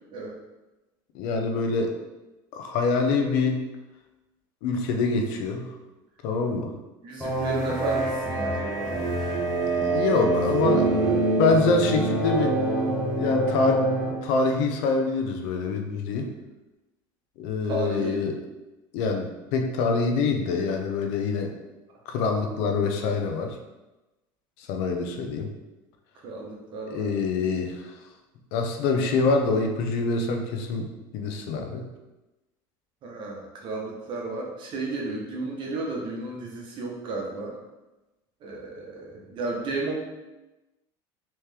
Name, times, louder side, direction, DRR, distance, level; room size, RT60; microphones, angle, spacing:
voice 1, 1.1-1.9 2.5-3.6 4.6-5.7 6.2-6.7 9.7-12.6 13.2-13.8 14.2-16.3 17.4-18.4 18.9-21.5 22.1-23.6 24.6-25.5 26.9-27.9 28.5-31.8, left 4 dB, 70° left, 3 dB, 0.6 m, -25 dB
voice 2, 7.0-9.0 10.0-10.3 10.7-11.3 17.6-18.2 26.2-27.1 33.0-37.5 38.4-39.9, right 3 dB, 50° right, -1 dB, 1.0 m, -33 dB
sound 1, 7.2-14.1, right 2 dB, 5° left, 1.2 m, -25 dB
3.2 x 3.1 x 3.4 m, 1.0 s
supercardioid pair, 120°, 11 cm